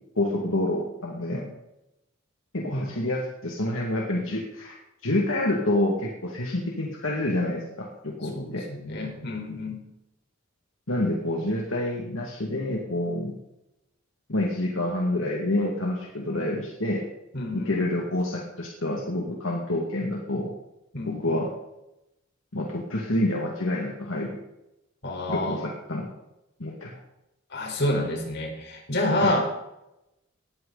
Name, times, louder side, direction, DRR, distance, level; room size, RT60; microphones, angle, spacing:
voice 1, 0.2-1.4 2.5-4.8 5.0-8.6 10.9-13.4 14.3-17.0 17.5-20.5 21.1-21.5 22.5-24.4 25.3-26.1 26.6-27.0 29.2-29.4, left 1 dB, 75° left, -1 dB, 2.4 m, -28 dB
voice 2, 8.3-9.8 17.3-17.7 20.9-21.4 25.0-25.6 27.5-29.4, left 1 dB, 55° left, 1 dB, 4.7 m, -28 dB
19.0 x 14.0 x 4.2 m, 0.90 s
head